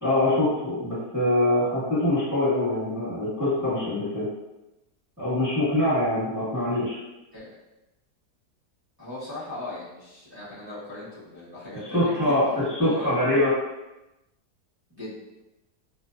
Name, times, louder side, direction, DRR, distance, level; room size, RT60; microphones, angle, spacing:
voice 1, 0.0-4.3 5.2-7.0 11.9-13.5, left 1 dB, 5° right, -13 dB, 0.9 m, -24 dB
voice 2, 9.0-12.1 12.8-13.2 14.9-15.1, left 2 dB, 25° right, -11 dB, 0.5 m, -38 dB
2.6 x 2.1 x 2.5 m, 0.98 s
omnidirectional pair, 1.7 m